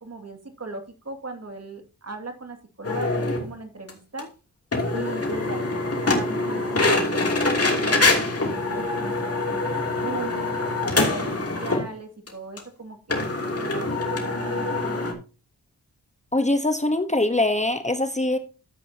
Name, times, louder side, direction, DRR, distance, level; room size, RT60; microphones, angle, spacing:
voice 1, 0.0-4.3 4.9-10.6 10.9-14.6, right 2 dB, 40° right, 5 dB, 2.3 m, -38 dB
sound 1, 2.8-3.4 3.9-4.0 4.2-4.3 4.7-11.9 12.3-12.4 12.6-12.7 13.1-15.1, left 2 dB, 40° left, 2.8 m, -24 dB
voice 2, 16.3-18.4, left 2 dB, 20° left, 8 dB, 1.0 m, -23 dB
12.5 x 8.3 x 2.8 m, 0.33 s
cardioid pair, 65°, 38 cm